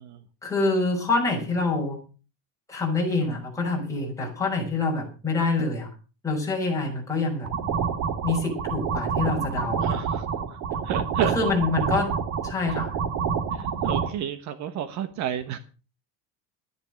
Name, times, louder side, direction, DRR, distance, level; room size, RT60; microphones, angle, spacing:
voice 1, 0.4-2.0 2.7-5.9 6.2-7.5 8.2-10.0 11.2-12.1 12.4-13.0, left 3 dB, 10° left, -2 dB, 6.1 m, -26 dB
sound 1, 7.4-14.1, right 7 dB, 70° right, 2.3 m, -28 dB
voice 2, 9.8-10.3 10.5-11.3 13.5-15.6, right 10 dB, 45° right, 11 dB, 1.2 m, -31 dB
13.5 x 10.5 x 6.4 m, 0.36 s
cardioid pair, 160°, 38 cm